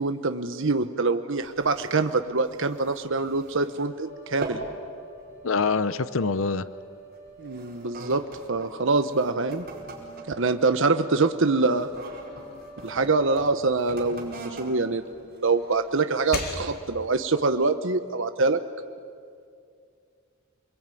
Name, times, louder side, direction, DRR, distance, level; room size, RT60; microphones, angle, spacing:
voice 1, 0.0-4.6 7.4-8.2 8.5-9.6 10.4-12.0 12.8-15.2 15.4-18.6, right 3 dB, 65° right, 8 dB, 1.0 m, -25 dB
sound 1, 1.4-4.0 4.2-4.8 5.2-5.5 6.2-6.4 7.1-12.9 13.7-16.1 16.7-16.8, right 2 dB, 45° right, 5.1 m, -43 dB
sound 2, 3.9-13.7, right 1 dB, 15° left, 6.8 m, -47 dB
voice 2, 5.4-6.6, left 4 dB, 70° left, 14 dB, 0.8 m, -25 dB
sound 3, 11.8-15.0 15.4-17.2, left 2 dB, 50° left, 3.0 m, -40 dB
28.0 x 22.0 x 9.2 m, 2.3 s
head